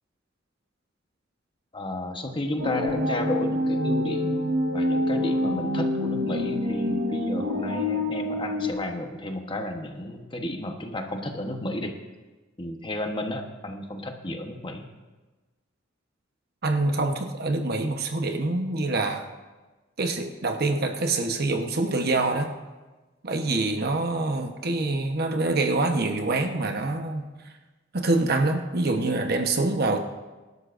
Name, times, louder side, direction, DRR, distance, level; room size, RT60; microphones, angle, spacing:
voice 1, 1.7-12.0 12.6-14.9, left 1 dB, 25° left, 4 dB, 1.1 m, -33 dB
sound 1, 2.6-8.7, left 1 dB, 80° right, 1.4 m, -26 dB
voice 2, 16.6-19.3 20.0-22.5 23.2-27.3 27.9-30.0, right 2 dB, 55° right, 4 dB, 1.1 m, -25 dB
24.0 x 12.0 x 2.6 m, 1.2 s
head